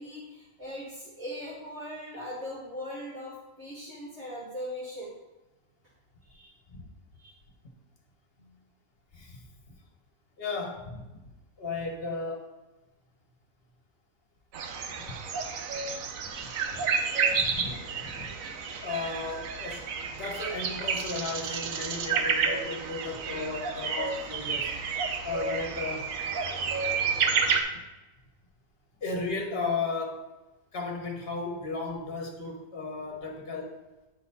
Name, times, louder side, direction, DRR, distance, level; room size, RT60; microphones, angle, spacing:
voice 1, 0.0-5.1 6.2-6.5 7.2-7.3 8.4-8.5, equal, 55° right, -8 dB, 1.8 m, -40 dB
voice 2, 9.1-9.4 10.4-11.0 11.6-12.5 16.7-16.8 17.3-17.7 18.0-18.3 18.8-24.7 25.2-26.1 29.0-30.3 30.7-33.8, left 3 dB, 50° left, 1 dB, 1.4 m, -35 dB
sound 1, 14.5-27.6, right 5 dB, 90° right, 1.1 m, -30 dB
9.5 x 4.0 x 4.3 m, 1.1 s
omnidirectional pair, 1.4 m